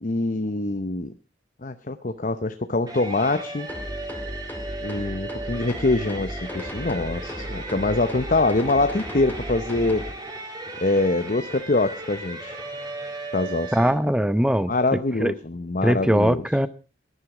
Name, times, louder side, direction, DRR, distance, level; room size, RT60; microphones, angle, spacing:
voice 1, 0.0-1.1 1.6-3.7 4.8-10.0 10.8-12.6 13.3-13.8 14.7-16.4, left 2 dB, 45° left, 8 dB, 0.9 m, -24 dB
sound 1, 2.9-13.9, right 2 dB, 25° right, 3.4 m, -36 dB
sound 2, 3.7-10.1, equal, 10° left, 2.2 m, -36 dB
voice 2, 13.7-15.3 15.8-16.7, equal, 5° right, 13 dB, 0.8 m, -21 dB
18.5 x 11.0 x 5.0 m, 0.35 s
head